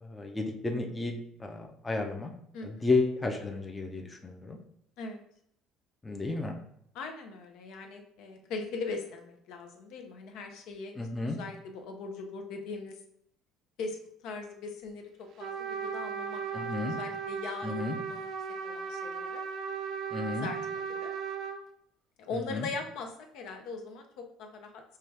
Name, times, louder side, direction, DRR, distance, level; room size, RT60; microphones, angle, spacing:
voice 1, 0.0-2.3 2.6-4.6 6.0-6.5 11.0-11.4 16.5-17.0 17.6-18.0 20.1-20.5 22.5-22.7, left 3 dB, 15° left, 2 dB, 0.5 m, -32 dB
voice 2, 2.5-2.9 5.0-5.2 6.9-12.9 13.8-18.3 18.6-19.4 20.3-21.1 22.2-24.8, left 4 dB, 70° left, 4 dB, 0.6 m, -40 dB
Trumpet, 15.4-21.6, right 6 dB, 60° right, 0.5 m, -36 dB
5.6 x 2.3 x 3.3 m, 0.69 s
cardioid pair, 120°, 0 cm